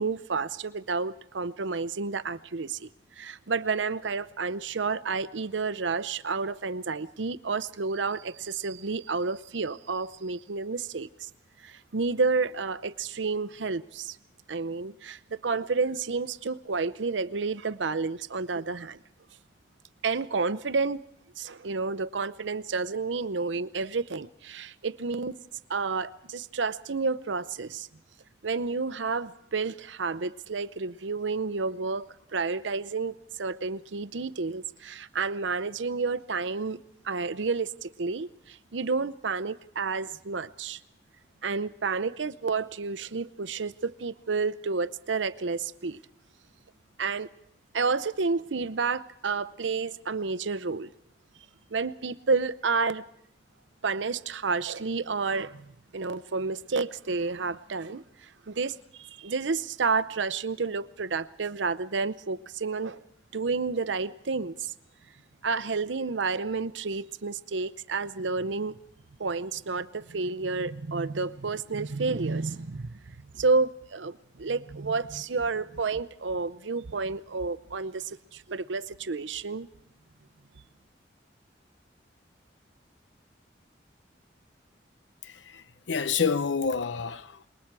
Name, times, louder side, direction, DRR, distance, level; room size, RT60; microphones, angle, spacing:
voice 1, 0.0-2.9 3.2-11.3 11.6-14.2 14.5-19.0 20.0-21.0 21.4-25.4 25.7-27.9 28.4-32.1 32.3-36.8 37.0-40.8 41.4-46.0 47.0-47.3 47.7-50.9 51.7-53.0 53.8-63.0 63.3-64.7 65.4-68.8 69.2-72.9 73.3-79.7, right 4 dB, 90° right, 0.7 m, -30 dB
voice 2, 85.2-87.5, left 5 dB, 85° left, 0.7 m, -29 dB
27.0 x 22.0 x 4.7 m
head